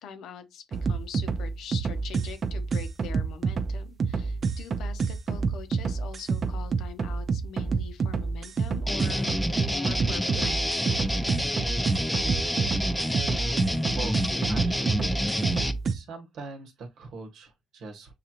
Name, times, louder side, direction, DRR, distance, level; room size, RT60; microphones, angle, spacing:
voice 1, 0.0-10.8, left 8 dB, 80° left, 0.8 m, -43 dB
sound 1, 0.7-16.0, right 5 dB, 50° right, 0.5 m, -28 dB
sound 2, 8.9-15.7, equal, 5° left, 0.6 m, -28 dB
voice 2, 14.5-15.1 15.9-18.1, right 4 dB, 75° right, 1.0 m, -41 dB
6.7 x 2.4 x 2.9 m
cardioid pair, 90°, 0 cm